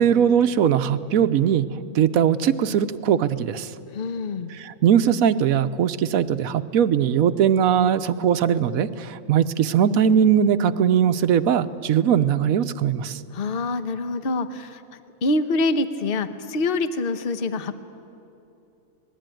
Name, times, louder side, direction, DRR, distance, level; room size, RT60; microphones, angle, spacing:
voice 1, 0.0-1.7 1.9-3.7 4.5-13.2, right 8 dB, 70° right, 12 dB, 1.2 m, -20 dB
voice 2, 3.9-4.5 13.3-14.8 15.2-17.8, left 2 dB, 40° left, 10 dB, 1.1 m, -25 dB
25.5 x 20.0 x 9.1 m, 2.7 s
omnidirectional pair, 1.6 m